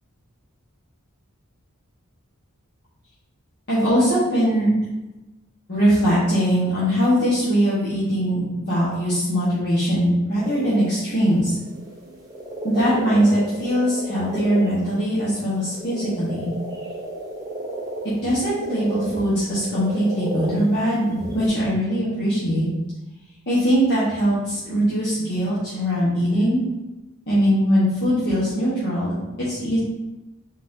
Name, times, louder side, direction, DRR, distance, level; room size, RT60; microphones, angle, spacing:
voice 1, 3.7-4.7 5.7-8.4 8.7-11.6 12.6-16.5 18.2-21.1 21.3-22.7 23.5-26.6 27.3-29.8, equal, 50° left, -11 dB, 1.2 m, -21 dB
sound 1, 10.4-21.5, right 1 dB, 15° right, 0.7 m, -33 dB
4.2 x 3.6 x 2.7 m, 1.1 s
head